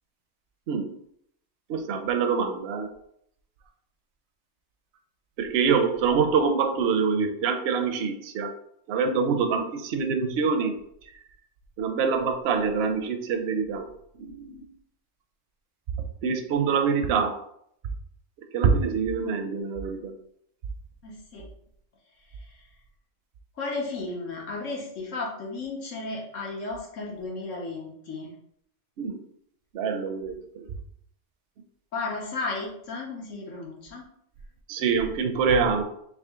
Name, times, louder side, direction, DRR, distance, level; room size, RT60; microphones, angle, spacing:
voice 1, 1.7-2.9 5.4-8.5 8.9-10.8 11.8-13.9 14.2-14.7 16.2-17.4 18.5-20.1 29.0-29.2 29.7-30.6 34.7-35.8, right 5 dB, 65° right, 6 dB, 0.7 m, -25 dB
voice 2, 21.0-21.4 23.6-28.3 31.9-34.0, left 3 dB, 90° left, -2 dB, 1.4 m, -34 dB
3.6 x 3.0 x 3.6 m, 0.71 s
omnidirectional pair, 1.3 m